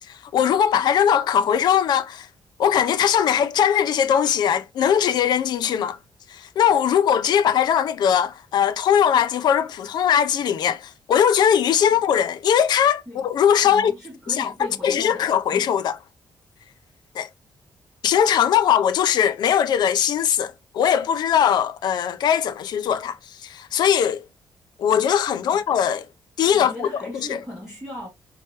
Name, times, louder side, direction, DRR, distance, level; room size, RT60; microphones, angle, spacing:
voice 1, 0.0-2.3 2.6-6.0 6.3-13.9 14.3-14.5 14.8-16.0 17.1-17.3 18.0-24.2 24.8-26.1 26.4-26.9 27.1-27.4, left 8 dB, 65° left, 0.5 m, -20 dB
voice 2, 13.6-15.7 25.4-25.6 26.5-28.1, left 1 dB, 5° right, 2.3 m, -38 dB
4.5 x 2.9 x 3.0 m
wide cardioid pair, 170°, 8 cm